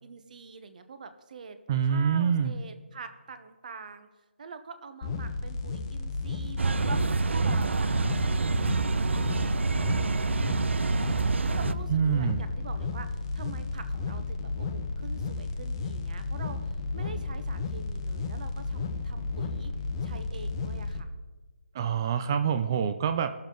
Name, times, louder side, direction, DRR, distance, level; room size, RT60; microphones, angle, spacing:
voice 1, 0.0-1.6 1.8-4.1 4.4-19.7 20.0-21.1, right 5 dB, 40° right, 9 dB, 1.0 m, -46 dB
voice 2, 1.7-2.5 11.9-12.4 21.7-23.3, right 7 dB, 20° right, 10 dB, 0.3 m, -26 dB
sound 1, 5.0-21.0, left 3 dB, 25° left, 0.8 m, -33 dB
sound 2, 6.6-11.7, right 4 dB, 90° right, 0.5 m, -27 dB
19.0 x 7.1 x 3.8 m, 1.2 s
hypercardioid pair, 165°, 6 cm